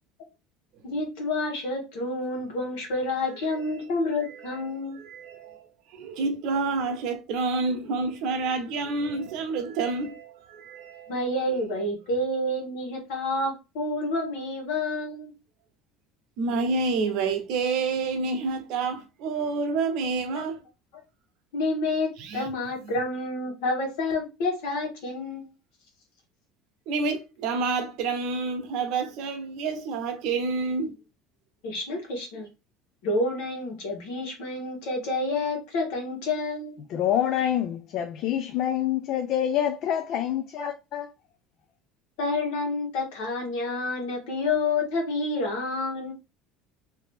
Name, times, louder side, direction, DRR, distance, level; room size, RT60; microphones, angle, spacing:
voice 1, 0.8-5.0 11.1-15.3 20.3-20.4 21.5-25.5 31.6-32.5 33.0-36.8 40.6-40.7 42.2-46.1, left 2 dB, 80° left, 1.4 m, -29 dB
voice 2, 4.3-4.7 5.0-5.7 5.9-11.2 16.4-20.6 22.2-22.5 22.8-22.9 26.9-31.0, right 4 dB, 60° right, 0.9 m, -28 dB
voice 3, 36.9-41.1, left 10 dB, 50° left, 0.3 m, -26 dB
2.8 x 2.8 x 3.4 m
cardioid pair, 155°, 0 cm